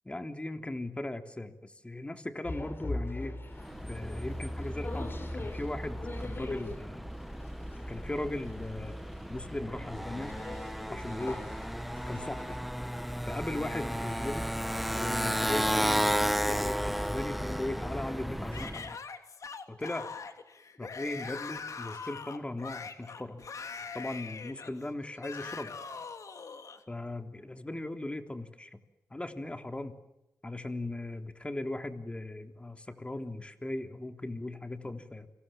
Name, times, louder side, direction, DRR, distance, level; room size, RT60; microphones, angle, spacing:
voice 1, 0.1-3.4 3.9-7.1 7.9-8.9 9.3-10.3 10.9-11.4 12.1-12.6 13.3-14.5 14.9-19.0 19.7-20.1 20.8-23.4 23.9-25.8 26.9-28.8 29.1-30.0 30.4-35.3, left 2 dB, 20° left, 6 dB, 3.5 m, -38 dB
sound 1, 2.4-12.6, left 2 dB, 40° left, 5.5 m, -43 dB
Motorcycle, 3.5-18.9, equal, ahead, 1.2 m, -34 dB
Yell / Screaming, 18.5-26.8, left 5 dB, 65° left, 3.3 m, -42 dB
30.0 x 25.5 x 7.4 m, 0.87 s
cardioid pair, 75°, 6 cm